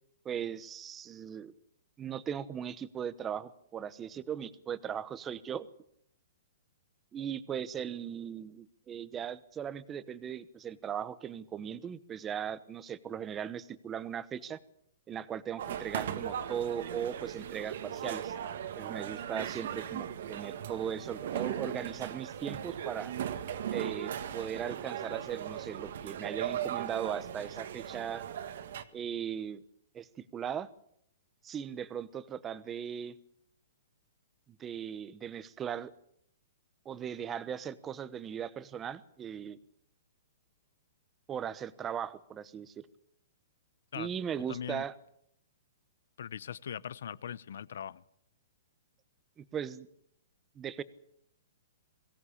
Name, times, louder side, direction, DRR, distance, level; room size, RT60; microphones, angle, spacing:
voice 1, 0.2-1.5 2.0-5.7 7.1-14.6 15.1-18.3 18.8-23.1 23.7-28.2 28.9-29.6 29.9-30.1 30.3-30.7 31.4-33.2 34.6-35.9 36.8-39.6 41.3-42.7 43.9-44.9 49.4-49.9 50.6-50.8, right 8 dB, 15° right, 16 dB, 0.9 m, -38 dB
sound 1, 15.6-28.8, right 9 dB, 60° right, 1.8 m, -38 dB
voice 2, 44.5-44.8 46.2-48.0, left 8 dB, 70° left, 20 dB, 0.8 m, -40 dB
22.5 x 17.0 x 8.5 m, 0.71 s
hypercardioid pair, 165°, 0 cm